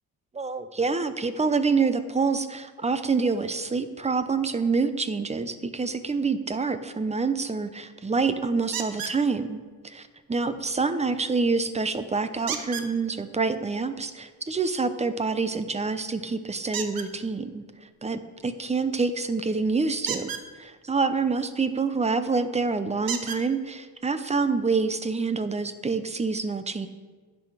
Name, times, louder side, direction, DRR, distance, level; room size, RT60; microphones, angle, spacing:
voice 1, 0.3-17.6 18.0-20.3 20.6-26.9, right 4 dB, 20° right, 11 dB, 0.6 m, -27 dB
sound 1, 8.7-9.2 12.5-12.9 16.7-17.1 20.0-20.4 22.1-22.2 23.1-23.4 24.4-24.5 25.0-25.1, right 7 dB, 75° right, 1.1 m, -32 dB
12.5 x 8.4 x 4.8 m, 1.5 s
cardioid pair, 120°, 36 cm